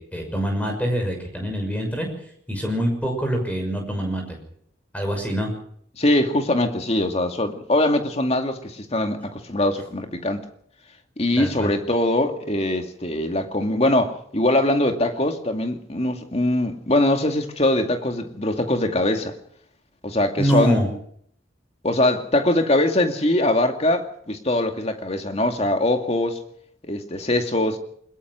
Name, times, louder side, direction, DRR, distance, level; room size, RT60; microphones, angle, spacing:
voice 1, 0.0-2.1 2.5-4.4 4.9-5.5 11.4-11.7 20.4-20.9, equal, 5° left, 6.3 m, -25 dB
voice 2, 6.0-10.5 11.2-19.4 20.0-20.8 21.8-26.4 26.8-27.8, left 1 dB, 35° left, 2.3 m, -22 dB
21.5 x 21.0 x 6.2 m
head